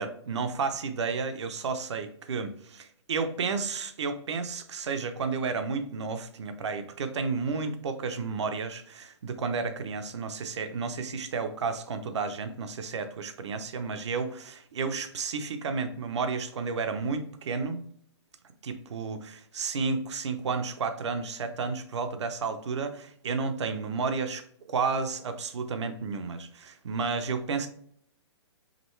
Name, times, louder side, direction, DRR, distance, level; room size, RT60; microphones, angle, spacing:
voice 1, 0.0-17.8 18.6-24.4 24.7-27.7, right 4 dB, 75° right, 8 dB, 0.7 m, -32 dB
5.1 x 3.1 x 3.1 m, 0.63 s
hypercardioid pair, 175°, 15 cm